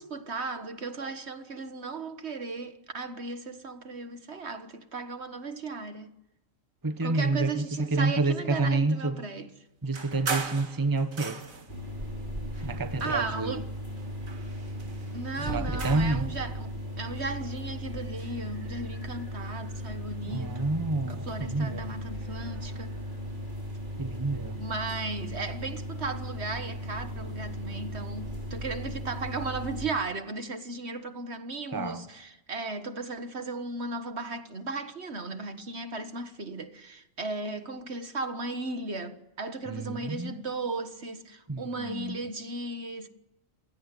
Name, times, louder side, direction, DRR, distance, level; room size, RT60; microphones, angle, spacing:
voice 1, 0.0-6.1 7.0-9.6 13.0-13.7 15.1-20.8 21.1-22.9 24.6-43.1, right 3 dB, 55° right, 1.7 m, -36 dB
voice 2, 6.8-7.6 7.9-9.1 9.8-11.4 12.6-13.5 15.4-16.2 20.3-21.2 21.5-21.9 24.0-24.6 31.7-32.1 39.7-40.3 41.5-42.2, right 3 dB, 15° right, 1.2 m, -28 dB
sound 1, 9.9-11.8 12.5-13.7 14.0-16.2, right 4 dB, 80° right, 2.3 m, -38 dB
sound 2, 11.7-29.9, equal, 35° right, 5.1 m, -37 dB
28.0 x 16.5 x 9.9 m
omnidirectional pair, 1.4 m